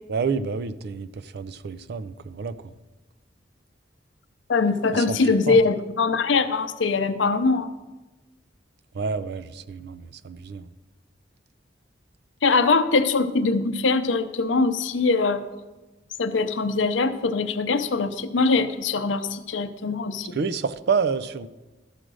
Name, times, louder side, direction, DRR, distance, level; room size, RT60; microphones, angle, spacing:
voice 1, 0.1-2.7 4.9-5.1 5.5-5.6 8.9-10.7 20.3-21.5, right 5 dB, 60° right, 15 dB, 0.4 m, -28 dB
voice 2, 4.5-7.7 12.4-15.4 16.2-20.4, left 4 dB, 75° left, 10 dB, 0.7 m, -22 dB
12.5 x 5.0 x 6.2 m, 1.1 s
head